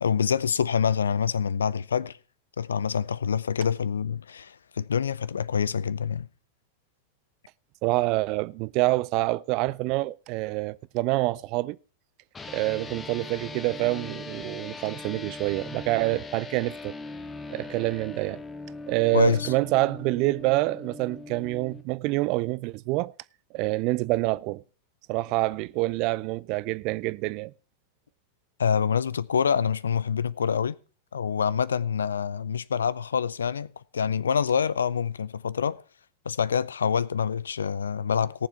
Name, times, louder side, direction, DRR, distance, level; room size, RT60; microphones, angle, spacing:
voice 1, 0.0-2.2 2.6-6.3 19.1-19.5 28.6-30.7 31.1-35.8 36.3-38.5, left 7 dB, 70° left, 0.5 m, -26 dB
voice 2, 7.8-11.8 12.5-16.9 17.5-18.4 18.9-23.1 23.5-24.6 25.1-27.5, right 20 dB, 40° right, 0.5 m, -27 dB
sound 1, 12.3-21.8, left 3 dB, 15° left, 1.2 m, -40 dB
18.0 x 7.0 x 4.4 m
figure-of-eight pair, 90°, 0 cm